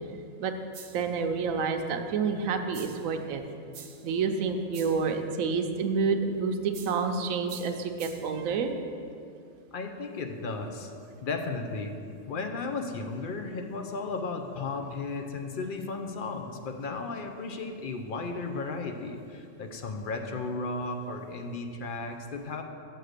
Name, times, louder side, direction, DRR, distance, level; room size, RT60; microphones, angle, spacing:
sound 1, 0.7-1.2 2.7-3.2 3.7-4.2 4.7-5.1 6.7-7.1 7.5-8.4, right 7 dB, 50° right, 0.6 m, -48 dB
voice 1, 0.9-3.4 4.0-8.7, right 5 dB, 85° right, 5 dB, 1.0 m, -28 dB
voice 2, 9.7-10.9 11.2-12.0 12.3-22.6, left 3 dB, 50° left, 5 dB, 0.7 m, -34 dB
6.5 x 6.2 x 6.5 m, 2.5 s
omnidirectional pair, 1.4 m